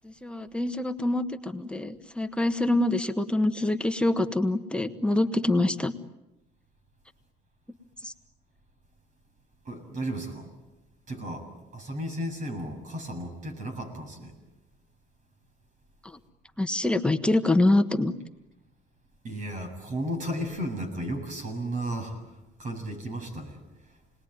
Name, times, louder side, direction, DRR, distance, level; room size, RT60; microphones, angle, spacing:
voice 1, 0.0-5.9 8.0-8.1 16.6-18.1, left 2 dB, 5° left, 7 dB, 1.4 m, -25 dB
voice 2, 9.7-10.5 11.1-11.4 11.7-14.3 19.2-22.2 22.6-23.6, right 1 dB, 50° right, 6 dB, 7.4 m, -34 dB
29.0 x 20.5 x 9.4 m, 0.98 s
cardioid pair, 110°, 17 cm